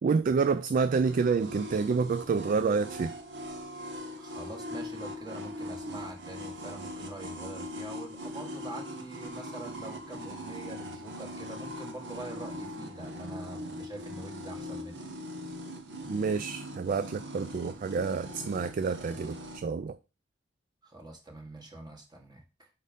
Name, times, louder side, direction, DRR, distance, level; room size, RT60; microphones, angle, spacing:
voice 1, 0.0-3.1 16.1-20.0, right 5 dB, 45° right, 0.3 m, -28 dB
sound 1, 1.0-19.6, equal, 70° right, 1.1 m, -41 dB
voice 2, 4.2-15.1 20.8-22.7, right 2 dB, 25° right, 1.6 m, -45 dB
5.1 x 4.3 x 5.2 m
head